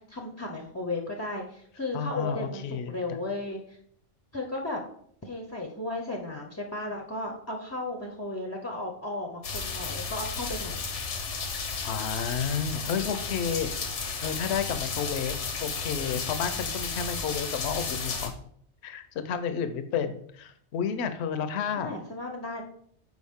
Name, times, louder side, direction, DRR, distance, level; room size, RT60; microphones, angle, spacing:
voice 1, 0.0-3.8 4.3-4.8 5.2-10.8 21.8-22.6, left 2 dB, 20° left, 1 dB, 0.5 m, -35 dB
voice 2, 1.9-3.2 11.8-13.7 14.2-15.4 15.6-18.3 18.8-21.9, left 7 dB, 75° left, 10 dB, 0.8 m, -31 dB
sound 1, 9.4-18.3, left 4 dB, 90° left, 1.2 m, -33 dB
6.2 x 4.7 x 3.5 m, 0.64 s
omnidirectional pair, 1.2 m